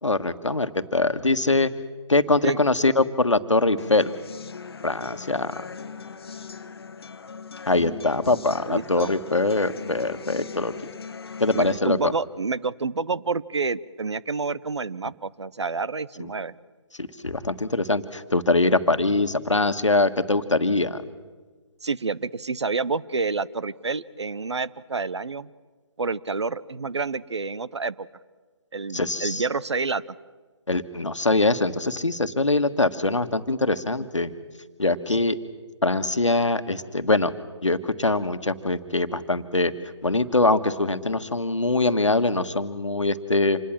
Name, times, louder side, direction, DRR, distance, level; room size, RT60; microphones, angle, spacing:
voice 1, 0.0-1.7 2.1-4.1 4.8-5.6 7.7-10.7 11.4-12.1 16.2-16.3 17.0-21.0 28.9-29.4 30.7-34.3 34.8-35.4 35.8-37.3 37.6-39.7 40.0-43.6, left 2 dB, 85° left, 10 dB, 1.5 m, -23 dB
sound 1, 3.8-11.8, left 5 dB, 55° left, 1.1 m, -39 dB
voice 2, 8.7-9.1 11.5-16.5 21.8-25.5 26.0-28.1 28.7-30.2, right 4 dB, 70° right, 18 dB, 0.9 m, -28 dB
27.0 x 20.5 x 7.5 m, 1.4 s
figure-of-eight pair, 145°, 15 cm